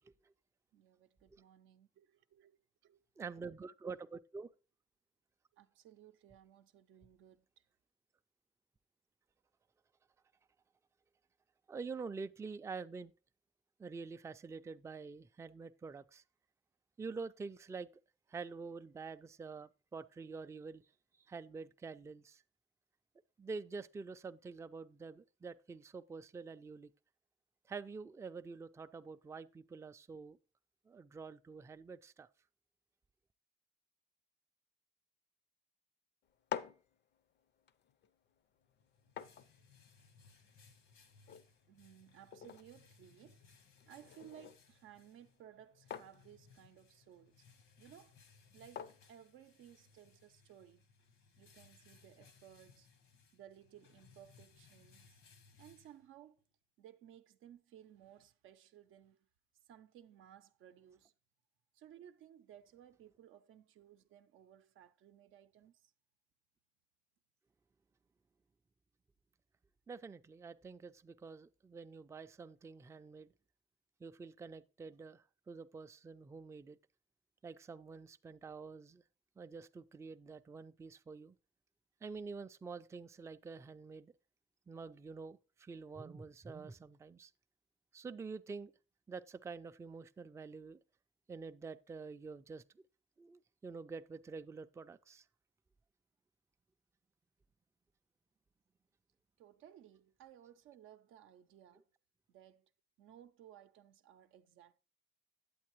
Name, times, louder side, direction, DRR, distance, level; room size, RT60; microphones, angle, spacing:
voice 1, 0.7-2.6 2.8-3.0 5.5-7.6 41.7-43.5 43.8-47.5 47.8-48.2 48.5-50.8 51.4-52.9 53.3-55.2 55.6-56.4 56.8-59.3 59.7-61.1 61.7-65.9 99.4-101.9 102.3-102.7 103.0-104.8, right 10 dB, 85° right, 0.5 m, -59 dB
voice 2, 3.2-4.5 11.7-13.1 13.8-16.2 17.0-17.9 18.3-20.8 21.2-22.4 23.4-26.9 27.7-30.4 30.9-32.3 69.9-73.3 74.0-76.8 77.4-79.0 79.4-81.4 82.0-84.1 84.7-87.3 87.9-88.7 89.1-90.8 91.3-92.8 93.2-95.2, right 4 dB, 15° right, 0.3 m, -47 dB
sound 1, 36.2-50.1, left 9 dB, 65° left, 0.5 m, -51 dB
sound 2, 38.6-56.4, left 5 dB, 85° left, 1.1 m, -65 dB
8.5 x 8.1 x 3.0 m
cardioid pair, 90°, 20 cm